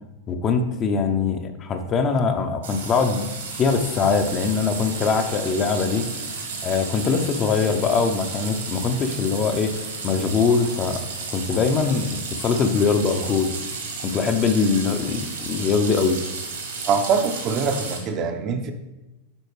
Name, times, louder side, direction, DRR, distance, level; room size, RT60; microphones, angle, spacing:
voice 1, 0.3-3.3 3.6-6.1 6.6-9.8 10.0-11.0 11.3-13.5 14.0-16.2, left 5 dB, 30° left, 6 dB, 0.6 m, -22 dB
sound 1, 2.6-18.0, right 4 dB, 65° right, 1.6 m, -33 dB
voice 2, 16.9-18.7, right 5 dB, 35° right, 7 dB, 0.6 m, -23 dB
9.6 x 4.2 x 3.2 m, 1.0 s
figure-of-eight pair, 90°, 0 cm